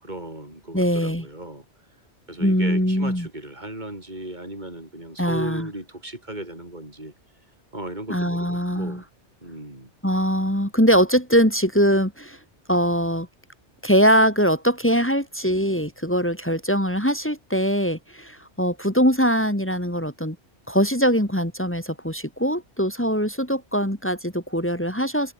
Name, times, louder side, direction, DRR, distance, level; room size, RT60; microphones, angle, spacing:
voice 1, 0.0-1.6 2.3-7.1 7.7-9.0 9.4-9.9, right 1 dB, 40° right, 7.6 m, -36 dB
voice 2, 0.7-1.3 2.4-3.3 5.2-5.7 8.1-9.0 10.0-12.4 12.7-13.3 13.8-20.4 20.7-25.3, equal, 10° left, 3.1 m, -22 dB
omnidirectional pair, 1.2 m